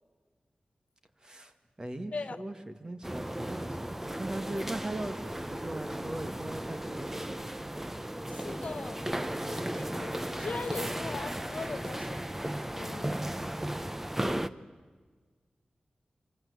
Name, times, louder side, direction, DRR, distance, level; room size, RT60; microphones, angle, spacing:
voice 1, 1.2-3.9 4.2-7.5, right 1 dB, 30° right, 7 dB, 2.0 m, -39 dB
voice 2, 2.1-2.4 8.3-12.3 12.7-13.2, left 4 dB, 60° left, 11 dB, 1.0 m, -40 dB
sound 1, 3.0-14.5, right 1 dB, 10° right, 0.8 m, -35 dB
26.5 x 25.0 x 8.2 m, 1.5 s
wide cardioid pair, 85°, 3 cm